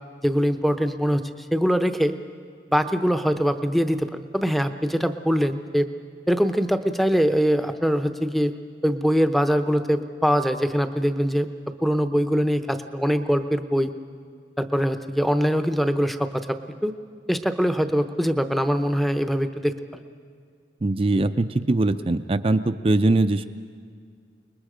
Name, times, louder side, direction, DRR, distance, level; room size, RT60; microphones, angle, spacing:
voice 1, 0.2-2.1 2.7-5.9 6.3-8.5 8.8-11.5 11.8-13.9 14.6-16.9 17.3-20.0, equal, ahead, 8 dB, 0.7 m, -23 dB
voice 2, 20.8-23.5, right 2 dB, 30° right, 9 dB, 0.5 m, -21 dB
29.5 x 20.5 x 5.1 m, 2.1 s
head